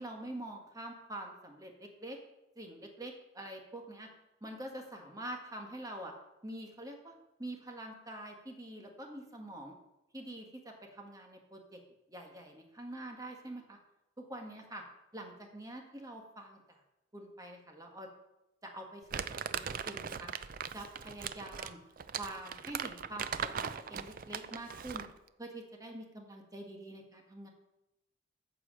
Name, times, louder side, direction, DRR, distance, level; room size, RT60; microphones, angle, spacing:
voice 1, 0.0-2.2 2.5-4.1 4.4-6.1 6.4-7.1 7.4-9.7 10.1-11.8 12.1-13.8 14.2-14.8 15.1-16.6 17.1-18.1 18.7-19.2 19.5-20.3 20.7-21.8 22.2-25.0 25.4-27.5, right 1 dB, 20° right, 2 dB, 1.6 m, -45 dB
Crumpling crinkling, 19.1-25.2, right 7 dB, 45° right, 0.5 m, -39 dB
13.5 x 4.8 x 7.6 m, 0.93 s
head